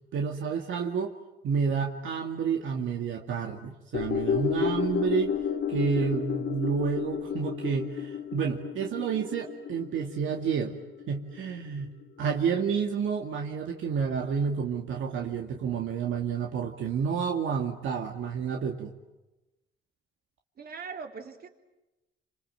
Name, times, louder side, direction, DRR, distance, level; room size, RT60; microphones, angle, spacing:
voice 1, 0.1-1.1 1.4-5.4 5.7-10.8 11.1-18.9, right 6 dB, 75° right, 2 dB, 2.3 m, -30 dB
sound 1, 3.9-12.4 12.7-12.8, left 8 dB, 60° left, 2.5 m, -32 dB
voice 2, 20.6-21.5, right 5 dB, 50° right, 4 dB, 3.8 m, -40 dB
29.0 x 26.5 x 7.7 m, 1.0 s
cardioid pair, 90°, 20 cm